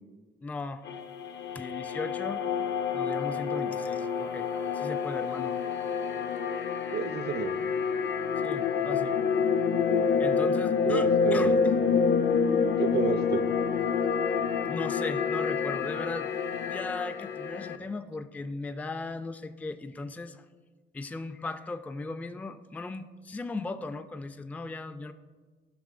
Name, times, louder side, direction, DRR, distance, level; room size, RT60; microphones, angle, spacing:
voice 1, 0.4-0.8 1.5-2.4 2.9-5.6 8.4-9.1 10.2-11.8 14.7-16.3 16.7-20.5 20.9-25.1, left 3 dB, 10° left, 10 dB, 0.3 m, -37 dB
sound 1, 0.9-17.8, left 6 dB, 60° left, 0.6 m, -28 dB
voice 2, 6.9-7.5 10.8-11.7 12.8-13.4, right 8 dB, 55° right, 13 dB, 0.5 m, -30 dB
12.5 x 5.8 x 2.5 m, 1.4 s
cardioid pair, 90°, 20 cm